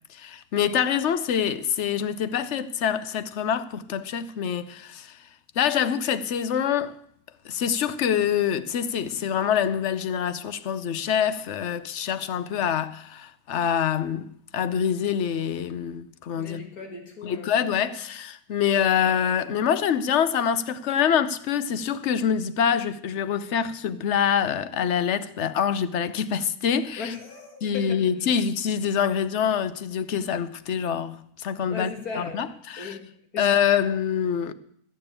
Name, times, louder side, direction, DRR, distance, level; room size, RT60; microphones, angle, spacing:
voice 1, 0.1-5.1 5.6-6.9 7.4-16.6 17.2-27.1 27.6-33.0 33.4-34.5, left 8 dB, 60° left, 0.9 m, -25 dB
voice 2, 16.4-17.5 27.0-28.0 31.7-32.4 32.8-33.0 33.3-33.4, left 4 dB, 75° left, 2.7 m, -37 dB
14.0 x 6.9 x 8.8 m
omnidirectional pair, 1.6 m